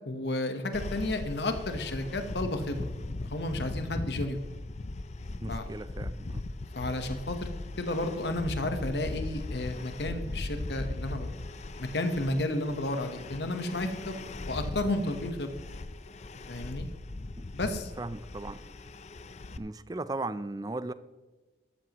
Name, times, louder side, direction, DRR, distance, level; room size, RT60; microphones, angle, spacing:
voice 1, 0.1-2.9 3.2-4.4 5.5-5.7 6.7-7.4 7.8-11.3 11.8-14.2 14.5-15.5 16.5-16.9 17.5-17.9, left 1 dB, 70° left, 7 dB, 1.1 m, -32 dB
sound 1, 0.7-19.6, left 2 dB, 40° left, 0.5 m, -39 dB
voice 2, 5.4-6.4 17.4-17.5 18.0-18.6 19.6-20.9, right 2 dB, 20° right, 14 dB, 0.4 m, -37 dB
14.0 x 12.5 x 3.0 m, 1.2 s
head